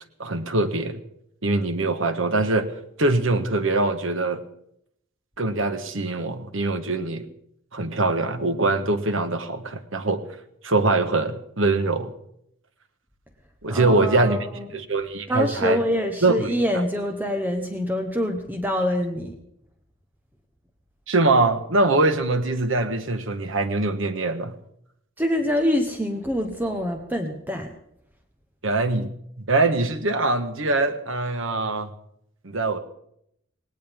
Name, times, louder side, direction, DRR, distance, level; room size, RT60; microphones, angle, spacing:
voice 1, 0.2-1.0 1.4-2.7 3.0-4.4 5.4-7.3 7.7-10.2 10.6-12.1 13.6-14.4 14.7-15.8 16.2-16.3 21.1-24.5 28.6-29.1 29.4-31.9 32.4-32.8, right 2 dB, 75° right, 9 dB, 1.3 m, -23 dB
voice 2, 13.7-14.7 15.3-19.4 25.2-27.7, left 1 dB, 10° right, 4 dB, 1.1 m, -25 dB
18.5 x 18.0 x 3.6 m, 0.74 s
head